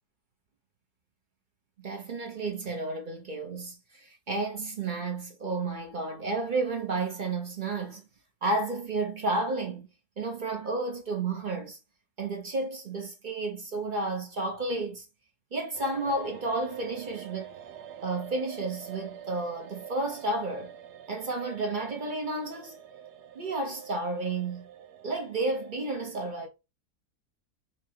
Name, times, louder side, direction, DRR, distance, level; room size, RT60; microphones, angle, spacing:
voice 1, 1.8-8.1 8.4-9.9 10.2-11.8 12.2-15.0 15.5-17.5 18.0-20.7 21.1-22.8 23.3-24.7 25.0-26.5, right 2 dB, 40° right, 0.8 m, -32 dB
sound 1, 15.7-25.9, right 9 dB, 90° right, 1.3 m, -46 dB
4.6 x 3.2 x 2.7 m
omnidirectional pair, 1.7 m